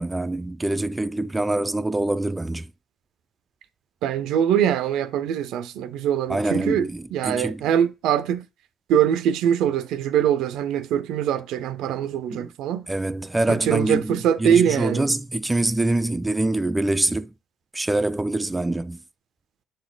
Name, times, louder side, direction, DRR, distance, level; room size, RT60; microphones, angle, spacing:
voice 1, 0.0-2.7 6.3-7.6 12.3-12.5 12.9-17.3 17.7-19.0, right 2 dB, 15° right, 0.4 m, -25 dB
voice 2, 4.0-8.4 8.9-12.9 13.5-15.1, right 9 dB, 80° right, 0.6 m, -23 dB
6.6 x 4.1 x 3.9 m
supercardioid pair, 75°, 0 cm